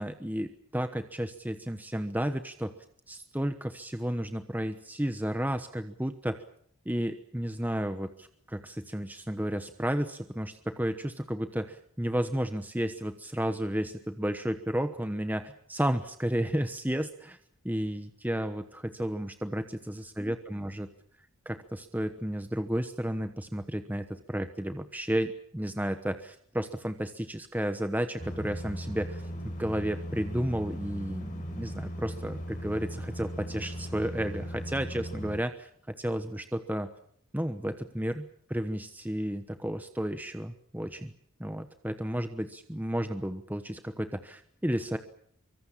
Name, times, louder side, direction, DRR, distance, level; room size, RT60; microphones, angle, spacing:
voice 1, 0.0-2.7 3.1-6.4 6.8-17.4 17.6-20.9 21.4-35.7 36.0-36.9 37.3-41.1 41.4-45.0, equal, 10° right, 8 dB, 1.1 m, -32 dB
sound 1, 28.2-35.4, equal, 40° left, 5.2 m, -38 dB
24.5 x 24.0 x 7.4 m, 0.65 s
head